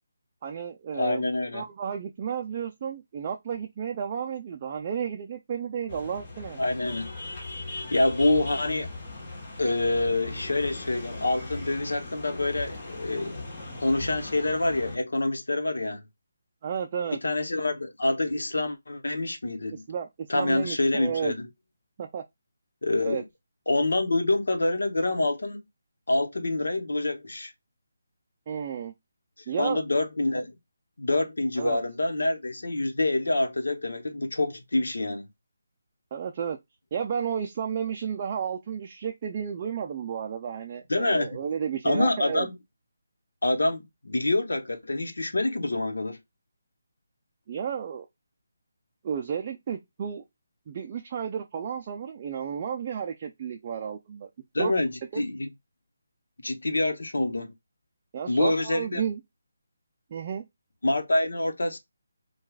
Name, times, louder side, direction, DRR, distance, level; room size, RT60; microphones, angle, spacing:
voice 1, 0.4-1.2 1.5-6.6 16.6-17.2 19.7-21.3 22.0-22.2 23.0-23.2 28.5-28.9 29.5-29.8 31.6-31.8 36.1-36.6 36.9-42.5 47.5-48.1 49.0-50.2 50.7-54.3 54.6-54.7 55.1-55.2 58.1-59.2 60.1-60.4, right 7 dB, 25° right, 0.4 m, -32 dB
voice 2, 0.9-1.6 6.6-7.1 7.9-8.9 9.6-13.4 13.8-16.0 17.2-19.8 20.3-21.5 22.8-23.2 23.7-25.6 26.1-27.5 29.6-30.5 31.0-35.2 40.9-41.4 41.8-42.5 43.4-46.2 54.5-54.9 55.2-55.5 56.4-57.5 58.3-59.0 60.8-61.8, left 2 dB, 90° left, 0.9 m, -26 dB
sound 1, 5.9-15.0, left 2 dB, 35° left, 1.2 m, -39 dB
4.5 x 2.3 x 2.3 m
hypercardioid pair, 170°, 0 cm